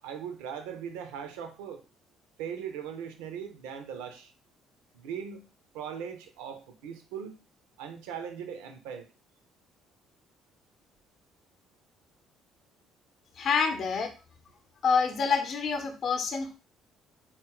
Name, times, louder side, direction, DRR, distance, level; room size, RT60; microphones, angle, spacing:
voice 1, 0.0-1.8 2.4-4.3 4.9-5.5 5.7-7.4 7.8-9.1, right 8 dB, 70° right, 8 dB, 0.6 m, -39 dB
voice 2, 13.4-14.1 14.8-16.5, left 5 dB, 50° left, 5 dB, 0.7 m, -27 dB
4.0 x 2.4 x 3.7 m, 0.32 s
figure-of-eight pair, 50°, 0 cm